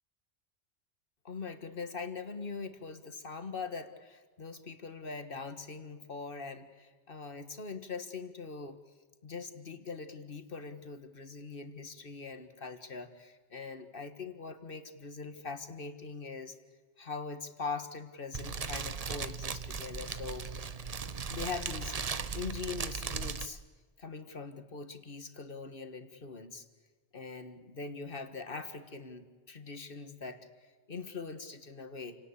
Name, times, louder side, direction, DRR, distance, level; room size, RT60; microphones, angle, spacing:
voice 1, 1.2-8.8 9.2-16.6 17.0-20.5 21.3-23.6 24.0-26.7 27.1-32.2, left 4 dB, 50° left, 8 dB, 1.8 m, -42 dB
Fire, 18.3-23.5, right 5 dB, 35° right, 0.8 m, -37 dB
29.0 x 18.5 x 8.3 m, 1.4 s
omnidirectional pair, 1.2 m